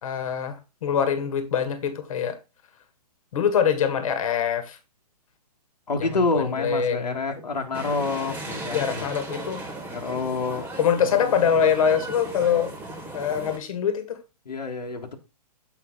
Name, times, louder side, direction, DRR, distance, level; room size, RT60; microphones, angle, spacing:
voice 1, 0.0-2.4 3.3-4.8 6.0-7.2 8.7-9.6 10.8-12.7 13.1-14.2, left 7 dB, 60° left, 1.7 m, -24 dB
voice 2, 5.9-9.0 9.9-10.7 11.0-11.5 14.4-15.2, left 3 dB, 90° left, 1.7 m, -28 dB
sound 1, 7.7-13.6, right 2 dB, 10° right, 1.4 m, -37 dB
7.4 x 5.5 x 3.8 m
hypercardioid pair, 130°, 20 cm